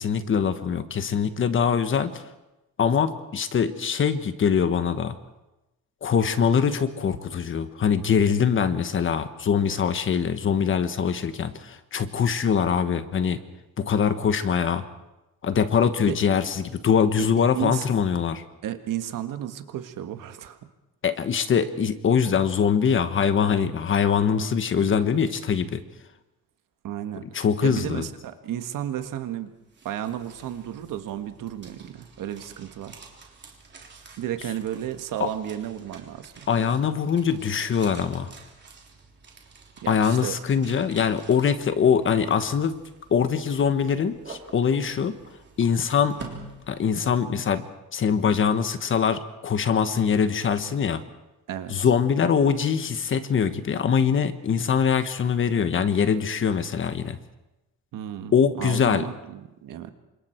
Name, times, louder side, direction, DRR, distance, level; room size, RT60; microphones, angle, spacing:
voice 1, 0.0-2.2 2.8-5.1 6.0-13.4 13.8-14.8 15.4-18.4 21.0-25.8 27.3-28.0 35.2-35.3 36.5-38.3 39.9-42.8 43.1-45.2 45.6-46.2 46.7-47.7 47.9-51.0 51.7-57.2 58.3-59.1, left 7 dB, 35° left, 10 dB, 1.3 m, -23 dB
voice 2, 17.6-17.9 18.6-20.6 26.8-29.5 29.9-32.9 34.2-36.5 39.8-40.4 51.5-51.8 57.9-59.9, right 11 dB, 70° right, 8 dB, 1.7 m, -33 dB
sound 1, 29.5-47.5, right 4 dB, 30° right, 3.4 m, -48 dB
28.5 x 26.0 x 4.5 m, 0.99 s
cardioid pair, 160°, 33 cm